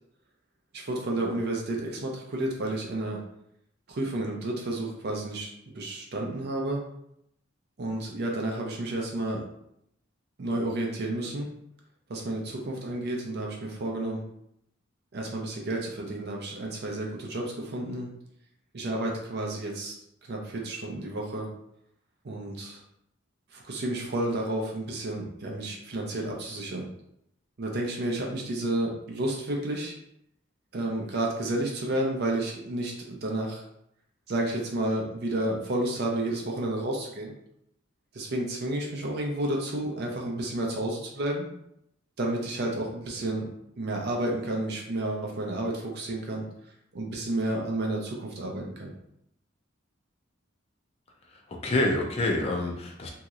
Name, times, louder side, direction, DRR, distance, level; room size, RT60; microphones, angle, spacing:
voice 1, 0.7-3.2 3.9-5.5 5.7-6.8 7.8-9.4 10.4-11.5 12.1-14.2 15.1-18.1 18.7-19.9 20.3-21.5 22.2-22.8 23.5-26.9 27.6-29.9 30.7-33.6 34.3-37.3 38.1-41.4 42.2-43.5 43.8-46.5 46.9-48.9, right 1 dB, 55° right, 0 dB, 0.5 m, -31 dB
voice 2, 51.3-53.1, left 2 dB, 30° left, 0 dB, 0.4 m, -27 dB
2.9 x 2.8 x 2.4 m, 0.76 s
head